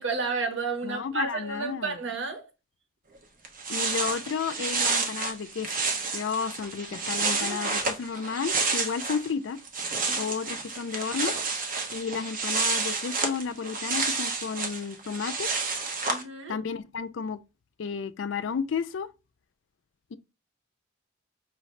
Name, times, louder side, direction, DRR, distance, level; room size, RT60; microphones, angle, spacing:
voice 1, 0.0-2.4 7.2-8.0 10.1-10.3 16.1-16.6, right 4 dB, 75° right, 1.2 m, -32 dB
voice 2, 0.8-2.0 3.7-5.7 6.1-9.6 10.1-11.3 11.9-15.5 16.5-17.4 17.8-19.1 20.1-20.2, left 6 dB, 75° left, 0.4 m, -32 dB
sound 1, 3.2-3.3 3.4-9.3 9.6-16.2, right 4 dB, 45° right, 0.8 m, -30 dB
5.6 x 2.6 x 3.2 m
head